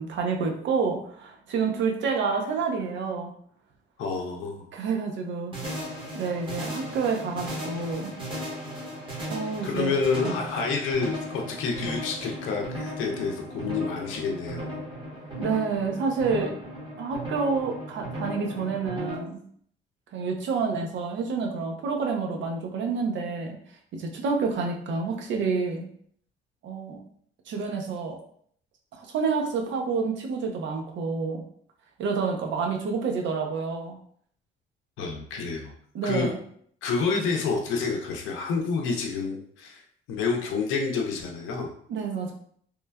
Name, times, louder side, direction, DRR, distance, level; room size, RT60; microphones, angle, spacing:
voice 1, 0.0-3.3 4.7-5.8 6.1-8.1 9.3-9.9 10.2-10.3 15.4-16.5 17.0-19.4 20.1-23.6 23.9-25.9 26.6-27.0 27.5-28.2 28.9-31.4 32.0-34.0 35.9-36.4 41.9-42.3, right 5 dB, 70° right, 2 dB, 0.6 m, -28 dB
voice 2, 4.0-4.7 9.6-14.8 35.0-35.7 36.0-36.3 36.8-39.8 40.1-41.7, left 4 dB, 85° left, 1 dB, 0.5 m, -28 dB
sound 1, 5.5-19.1, equal, 25° right, 1.1 m, -36 dB
3.0 x 2.2 x 2.2 m, 0.62 s
cardioid pair, 90°, 20 cm